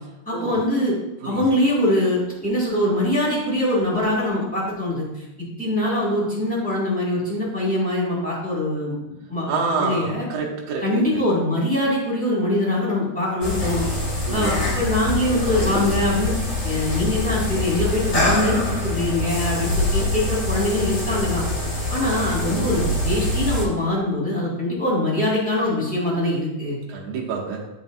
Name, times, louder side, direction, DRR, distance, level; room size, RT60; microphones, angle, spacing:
voice 1, 0.2-0.9 1.2-9.0 9.3-10.2 10.8-13.8 14.3-16.3 16.6-21.4 21.9-26.8, left 1 dB, 5° left, -6 dB, 1.3 m, -23 dB
voice 2, 9.5-11.2 14.2-14.7 26.9-27.7, right 4 dB, 65° right, -2 dB, 2.0 m, -28 dB
sound 1, 13.4-23.6, left 1 dB, 45° left, 0.9 m, -24 dB
11.0 x 4.0 x 2.6 m, 0.95 s
omnidirectional pair, 3.6 m